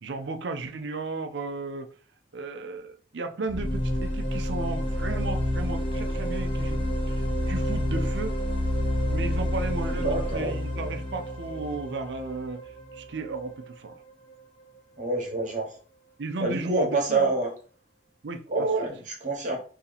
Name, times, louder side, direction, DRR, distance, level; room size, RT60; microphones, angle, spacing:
voice 1, 0.0-1.9 2.3-8.4 9.1-12.6 12.9-14.0 16.2-17.3 18.2-18.7, right 3 dB, 70° right, 0.5 m, -35 dB
sound 1, 3.5-13.3, equal, 30° left, 0.7 m, -28 dB
voice 2, 9.9-10.6 15.0-15.7 16.4-17.5 18.5-19.6, right 3 dB, 45° right, 1.1 m, -27 dB
2.8 x 2.8 x 3.9 m
head